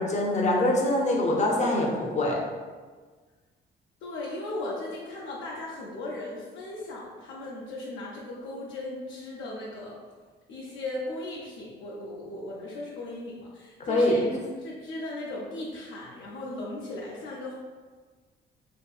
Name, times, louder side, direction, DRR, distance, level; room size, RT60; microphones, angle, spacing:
voice 1, 0.0-2.4 13.8-14.4, left 1 dB, 35° left, -2 dB, 0.6 m, -24 dB
voice 2, 4.0-10.0 10.5-14.3 14.6-17.5, left 2 dB, 80° left, -5 dB, 0.5 m, -37 dB
2.7 x 2.5 x 2.3 m, 1.4 s
cardioid pair, 90°, 20 cm